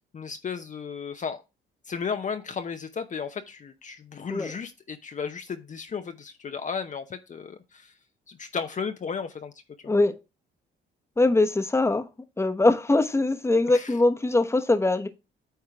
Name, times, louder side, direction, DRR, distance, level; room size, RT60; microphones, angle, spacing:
voice 1, 0.1-1.4 1.9-7.9 8.3-9.5 9.8-9.9 13.7-13.9, left 6 dB, 40° left, 0.8 m, -34 dB
voice 2, 9.8-10.2 11.2-12.1 12.4-15.1, left 2 dB, 15° left, 1.1 m, -22 dB
9.1 x 3.7 x 4.7 m
cardioid pair, 90°, 20 cm